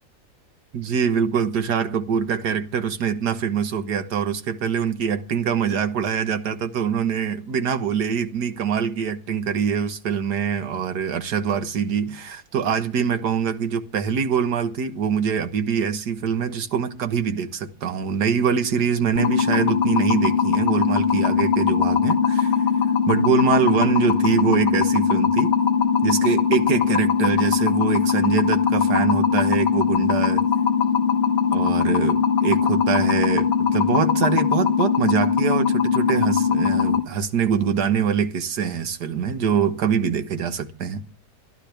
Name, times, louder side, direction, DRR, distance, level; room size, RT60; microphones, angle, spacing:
voice 1, 0.7-22.5 23.1-25.5 26.0-30.4 31.5-41.0, right 7 dB, 75° right, 1.8 m, -24 dB
sound 1, 19.2-37.0, left 6 dB, 55° left, 1.6 m, -20 dB
23.5 x 12.0 x 3.4 m
omnidirectional pair, 1.8 m